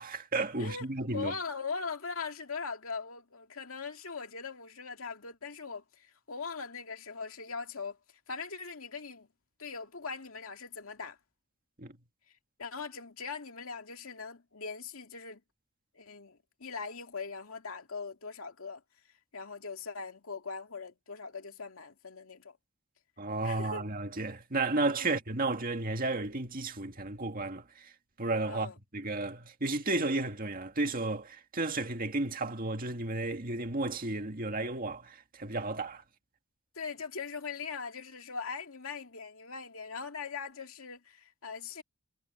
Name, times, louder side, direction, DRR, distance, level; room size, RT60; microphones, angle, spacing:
voice 1, 0.0-1.3 11.8-11.9 23.2-27.9 28.2-36.0, right 2 dB, 45° right, 2.0 m, -33 dB
voice 2, 1.1-8.0 8.3-9.3 9.6-11.2 12.6-15.4 15.9-18.8 19.3-22.6 23.4-23.8 25.0-25.1 28.5-28.8 36.7-41.8, left 5 dB, 75° left, 2.4 m, -40 dB
head